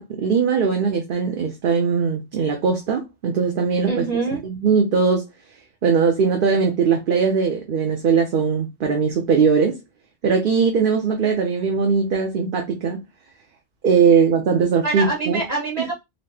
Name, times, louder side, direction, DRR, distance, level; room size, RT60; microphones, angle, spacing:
voice 1, 0.0-4.0 4.4-5.3 5.8-9.8 10.2-13.0 13.8-15.4 15.8-15.9, right 5 dB, 55° right, 0.8 m, -20 dB
voice 2, 3.8-4.4 14.8-15.9, right 3 dB, 40° right, 1.5 m, -25 dB
4.0 x 2.0 x 3.3 m
omnidirectional pair, 1.1 m